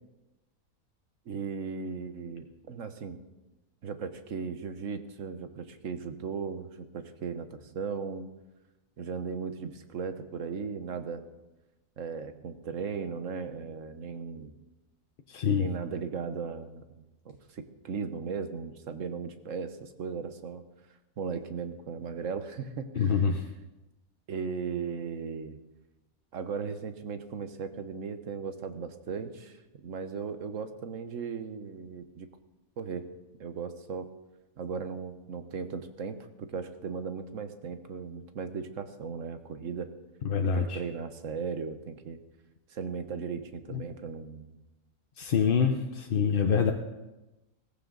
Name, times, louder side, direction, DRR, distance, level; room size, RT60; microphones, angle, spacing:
voice 1, 1.3-3.2 3.8-8.3 9.0-11.2 12.0-14.5 15.5-20.6 21.2-23.2 24.3-25.6 26.3-32.3 32.8-33.1 33.4-34.1 34.6-39.9 40.4-42.2 42.7-44.6, right 5 dB, 65° right, 9 dB, 1.4 m, -37 dB
voice 2, 15.3-15.7 23.0-23.4 40.2-40.8 43.7-43.8 45.2-46.7, left 6 dB, 45° left, 4 dB, 0.8 m, -26 dB
17.0 x 15.0 x 3.9 m, 1.0 s
omnidirectional pair, 1.5 m